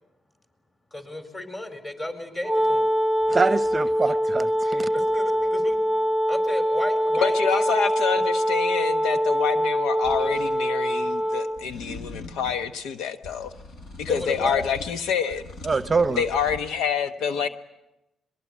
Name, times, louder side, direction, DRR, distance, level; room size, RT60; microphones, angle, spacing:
voice 1, 0.9-2.9 4.9-5.8 6.3-7.7 14.1-14.6, left 1 dB, 25° left, 4.6 m, -33 dB
Wind instrument woodwind instrument, 2.4-11.6, equal, 5° left, 1.3 m, -23 dB
voice 2, 3.3-4.9 15.6-16.2, right 4 dB, 25° right, 0.8 m, -24 dB
voice 3, 7.2-13.5 14.0-15.4 16.2-17.5, left 7 dB, 90° left, 1.0 m, -27 dB
sound 1, 10.0-10.5 11.6-12.7 13.2-15.0 15.3-16.6, left 3 dB, 70° left, 4.9 m, -41 dB
22.5 x 22.0 x 9.5 m
cardioid pair, 90°, 0 cm